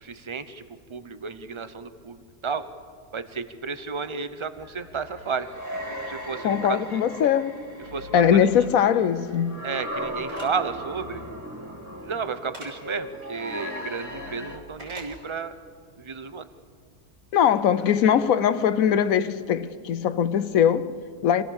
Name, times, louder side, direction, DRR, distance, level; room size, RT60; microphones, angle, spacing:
voice 1, 0.0-0.6 0.9-2.6 3.1-5.5 6.1-6.8 7.9-8.5 9.6-11.2 12.0-15.5 16.0-16.4, right 5 dB, 30° right, 0.6 m, -32 dB
sound 1, 4.6-14.6, equal, 10° right, 1.9 m, -37 dB
voice 2, 6.4-7.6 8.1-9.6 17.3-21.4, left 8 dB, 70° left, 1.1 m, -21 dB
sound 2, 10.3-10.5 12.5-12.7 14.8-15.1, equal, 65° right, 5.2 m, -41 dB
26.0 x 16.5 x 7.1 m
omnidirectional pair, 1.6 m